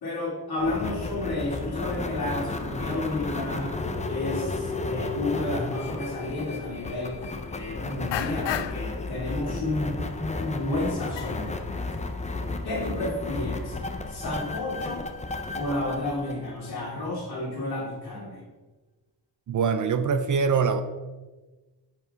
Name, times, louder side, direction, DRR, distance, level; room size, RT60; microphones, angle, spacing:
voice 1, 0.0-3.8 4.0-11.5 12.6-13.8 14.1-15.1 15.5-18.4, left 2 dB, 60° left, -3 dB, 2.7 m, -31 dB
sound 1, 0.6-17.1, left 3 dB, 15° left, 0.5 m, -33 dB
sound 2, 6.5-6.6 7.1-7.6 8.1-9.0 9.4-9.8 10.1-10.2 10.6-12.0 12.3-12.6, left 11 dB, 85° left, 0.5 m, -35 dB
voice 2, 19.5-20.8, right 5 dB, 45° right, 10 dB, 0.5 m, -23 dB
9.3 x 5.4 x 3.7 m, 1.2 s
wide cardioid pair, 150°, 42 cm